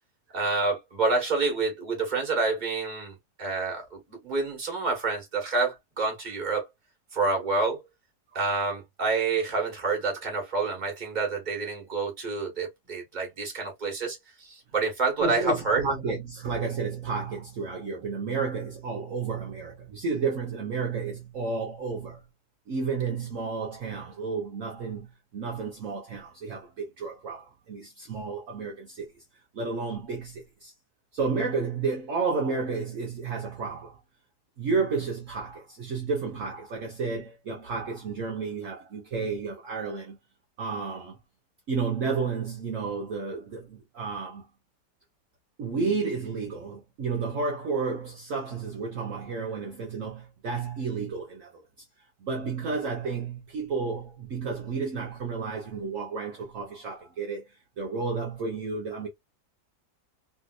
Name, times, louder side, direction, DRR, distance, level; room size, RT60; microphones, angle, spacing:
voice 1, 0.3-6.7 7.1-7.8 8.3-15.8, right 3 dB, 30° right, 1.5 m, -28 dB
voice 2, 15.2-22.3 22.7-29.1 29.5-30.7 31.1-34.0 34.6-40.2 40.6-41.2 41.7-44.5 45.6-51.6 52.2-59.1, right 4 dB, 60° right, 1.1 m, -31 dB
3.4 x 2.7 x 2.4 m
omnidirectional pair, 1.6 m